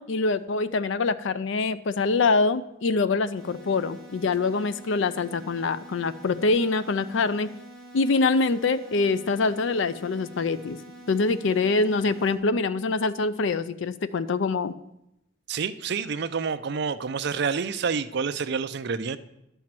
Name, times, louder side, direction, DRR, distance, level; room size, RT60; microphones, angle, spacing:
voice 1, 0.0-7.5 7.9-10.8 11.1-14.7, left 3 dB, 65° left, 14 dB, 0.5 m, -24 dB
sound 1, 3.4-12.4, right 1 dB, 5° left, 1.5 m, -47 dB
voice 2, 15.5-19.2, right 5 dB, 55° right, 11 dB, 0.5 m, -28 dB
10.5 x 4.5 x 7.4 m, 0.85 s
head